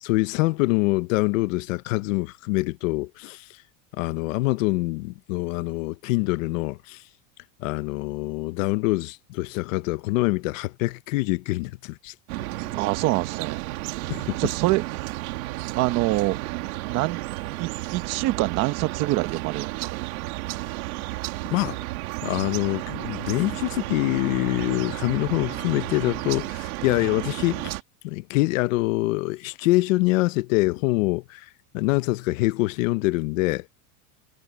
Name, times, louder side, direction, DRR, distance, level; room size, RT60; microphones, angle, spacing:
voice 1, 0.0-3.5 3.9-7.0 7.6-12.1 14.1-14.4 21.5-21.8 22.2-27.7 28.0-31.5 31.7-33.7, left 21 dB, 55° left, 0.9 m, -25 dB
sound 1, 12.3-27.8, right 20 dB, 65° right, 2.6 m, -32 dB
voice 2, 12.7-13.6 14.4-15.1 15.7-16.4 16.9-17.2 17.6-20.1, right 18 dB, 35° right, 1.0 m, -25 dB
supercardioid pair, 170°, 46 cm